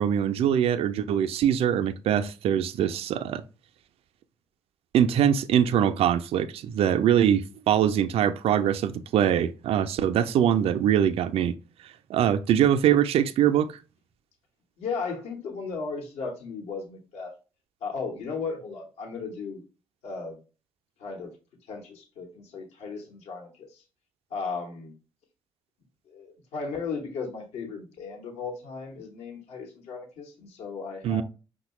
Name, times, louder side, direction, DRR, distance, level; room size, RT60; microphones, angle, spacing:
voice 1, 0.0-3.4 4.9-11.5 12.1-13.7 31.0-31.2, right 9 dB, 60° right, 0.4 m, -23 dB
voice 2, 14.8-17.3 17.8-19.6 20.0-20.4 21.0-21.3 21.7-23.8 24.3-24.9 26.1-31.2, left 4 dB, 75° left, 1.0 m, -36 dB
5.4 x 2.1 x 2.9 m
hypercardioid pair, 45°, 11 cm